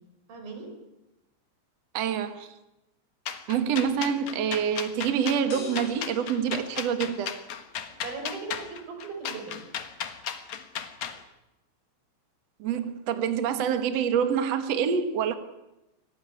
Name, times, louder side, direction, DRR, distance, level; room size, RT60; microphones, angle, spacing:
voice 1, 0.3-0.7 7.8-9.7, right 4 dB, 45° right, 5 dB, 6.4 m, -38 dB
voice 2, 1.9-2.5 3.5-7.3 12.6-15.3, right 7 dB, 85° right, 8 dB, 1.4 m, -26 dB
sound 1, 3.3-11.2, left 8 dB, 80° left, 1.6 m, -35 dB
sound 2, 5.5-7.5, left 7 dB, 50° left, 5.8 m, -44 dB
24.5 x 18.0 x 9.7 m, 0.94 s
omnidirectional pair, 5.9 m